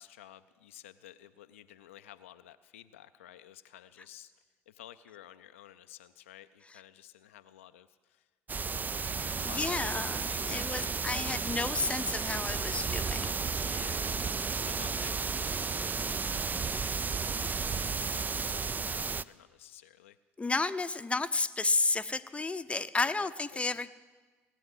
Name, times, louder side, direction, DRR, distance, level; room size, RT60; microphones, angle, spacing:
voice 1, 0.0-8.3 9.4-11.2 13.6-14.2 14.6-20.2 23.2-23.7, left 12 dB, 80° left, 10 dB, 0.4 m, -53 dB
sound 1, 8.5-19.2, right 5 dB, 25° right, 0.4 m, -33 dB
voice 2, 9.1-13.4 20.4-23.9, left 3 dB, 15° left, 11 dB, 0.7 m, -32 dB
18.0 x 8.7 x 8.1 m, 1.4 s
figure-of-eight pair, 50°, 7 cm